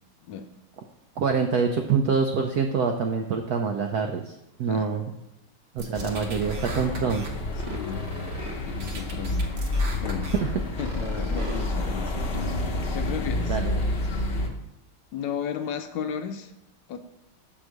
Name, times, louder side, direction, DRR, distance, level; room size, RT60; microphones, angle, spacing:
voice 1, 1.2-5.0 5.7-7.4 10.4-10.5 13.5-13.8, right 5 dB, 85° right, 4 dB, 0.8 m, -26 dB
sound 1, 5.8-7.3 7.6-8.5 8.8-10.4 10.8-11.6, right 2 dB, 55° right, 0.9 m, -40 dB
sound 2, 5.9-14.5, left 2 dB, 50° left, 0.7 m, -29 dB
voice 2, 7.6-8.0 8.7-9.5 10.0-10.3 10.8-12.6 12.9-13.6 15.1-16.5 16.9-17.0, left 7 dB, 75° left, 7 dB, 1.1 m, -34 dB
6.1 x 4.7 x 6.5 m, 0.87 s
omnidirectional pair, 2.3 m